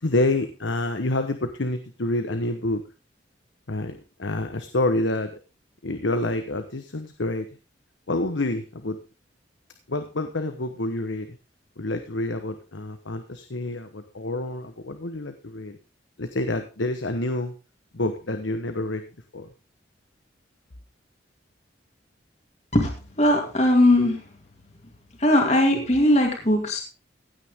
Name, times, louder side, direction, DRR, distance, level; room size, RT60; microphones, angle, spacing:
voice 1, 0.0-2.8 3.7-5.3 5.8-7.5 8.1-9.0 9.9-11.4 11.8-15.8 16.2-17.5 17.9-19.0 19.3-19.5, left 2 dB, 80° left, 8 dB, 1.1 m, -28 dB
voice 2, 22.7-24.2 25.2-26.8, left 1 dB, 35° left, 1 dB, 2.4 m, -19 dB
16.0 x 9.0 x 3.6 m, 0.32 s
head